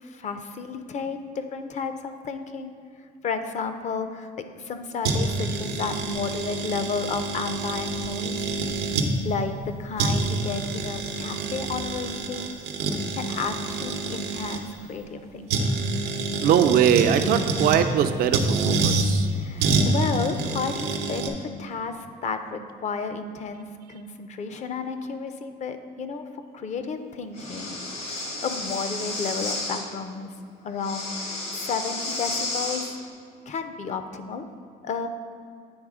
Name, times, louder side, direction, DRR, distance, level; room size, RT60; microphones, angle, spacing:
voice 1, 0.0-2.7 3.2-4.3 4.6-8.5 9.2-12.5 13.1-15.7 19.3-26.2 26.5-30.3 30.6-32.8 33.5-34.5 34.8-35.1, left 5 dB, 45° left, 8 dB, 0.5 m, -32 dB
sound 1, 5.0-9.1 9.6-9.7 10.0-14.6 15.5-17.8 18.3-19.1 19.6-21.3, right 3 dB, 90° right, 0.7 m, -27 dB
voice 2, 16.4-19.3, right 9 dB, 65° right, 7 dB, 0.4 m, -21 dB
Breathing, 27.3-29.8 30.8-32.9, left 2 dB, 75° left, 1.7 m, -32 dB
8.8 x 3.5 x 4.8 m, 2.3 s
cardioid pair, 110°, 17 cm